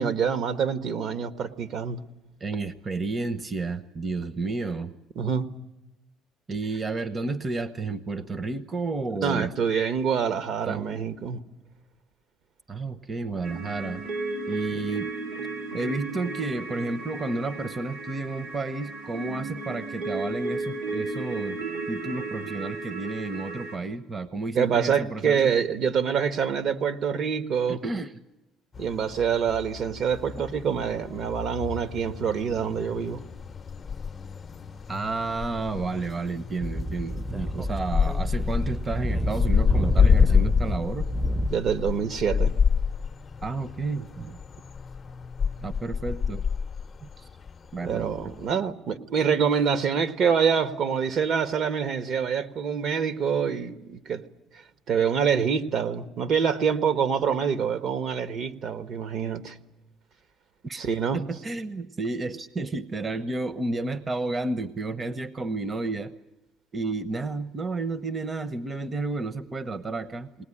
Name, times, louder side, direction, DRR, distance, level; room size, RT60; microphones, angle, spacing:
voice 1, 0.0-2.0 5.1-5.5 9.2-11.4 14.7-14.8 24.5-27.8 28.8-33.2 41.5-42.5 47.8-54.2 54.9-59.6 60.8-61.2, right 7 dB, 60° right, 1.4 m, -26 dB
voice 2, 2.4-5.0 6.5-9.5 10.7-10.8 12.7-14.1 14.5-15.1 15.7-21.6 21.9-25.5 27.7-28.1 34.9-41.1 43.4-44.4 45.6-46.4 47.0-47.3 47.7-48.3 60.6-60.9 61.1-66.1 66.7-70.4, right 3 dB, 30° right, 1.0 m, -31 dB
sound 1, 13.4-23.8, right 3 dB, 85° right, 3.8 m, -34 dB
sound 2, 28.7-48.5, left 6 dB, 35° left, 0.7 m, -28 dB
Speech / Wind, 36.6-41.5, equal, 5° right, 0.8 m, -29 dB
20.0 x 19.5 x 10.0 m
supercardioid pair, 75°, 0 cm